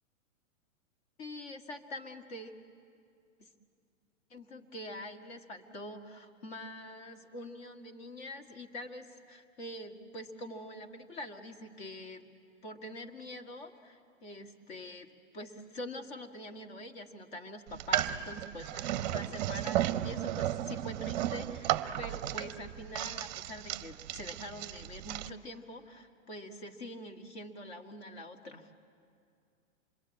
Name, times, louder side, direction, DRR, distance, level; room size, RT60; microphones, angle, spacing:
voice 1, 1.2-2.5 3.4-3.5 4.3-12.3 12.6-28.7, left 1 dB, 50° left, 5 dB, 2.0 m, -45 dB
sound 1, 17.7-25.3, right 12 dB, 30° right, 0.6 m, -34 dB
26.5 x 21.5 x 8.6 m, 2.4 s
hypercardioid pair, 150°, 41 cm